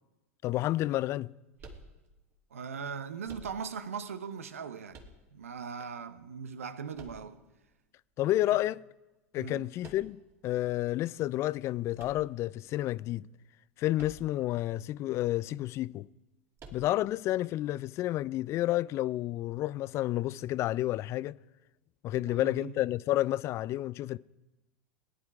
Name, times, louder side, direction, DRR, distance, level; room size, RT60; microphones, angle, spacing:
voice 1, 0.4-1.3 8.2-8.8 9.3-13.3 13.8-16.1 16.7-21.4 22.0-24.2, left 15 dB, 40° left, 0.4 m, -30 dB
sound 1, 1.6-2.4 3.2-3.9 4.9-5.6 6.9-7.7 9.8-10.4 11.9-12.8 13.9-14.5 14.8-14.9 16.6-17.2, right 2 dB, 35° right, 2.8 m, -51 dB
voice 2, 2.5-5.0 5.3-7.4 9.4-9.7 22.2-22.7, right 6 dB, 80° right, 1.0 m, -39 dB
18.0 x 10.5 x 4.9 m
hypercardioid pair, 90°, 8 cm